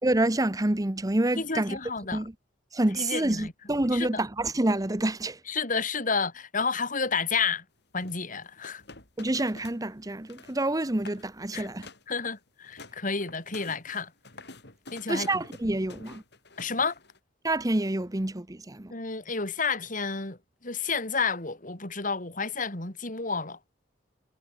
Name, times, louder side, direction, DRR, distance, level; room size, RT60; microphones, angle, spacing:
voice 1, 0.0-1.8 2.1-2.3 2.7-5.4 9.2-11.9 15.1-16.2 17.4-18.9, right 1 dB, 20° right, 0.9 m, -27 dB
voice 2, 1.4-2.2 3.0-3.5 3.9-4.1 5.5-7.6 7.9-8.8 11.5-11.7 12.1-14.1 14.9-15.4 16.6-16.9 18.9-23.6, left 5 dB, 45° left, 4.1 m, -30 dB
sound 1, 8.0-9.8 10.1-10.6 10.9-11.3 11.6-12.1 12.5-17.2, left 3 dB, 60° left, 7.5 m, -48 dB
head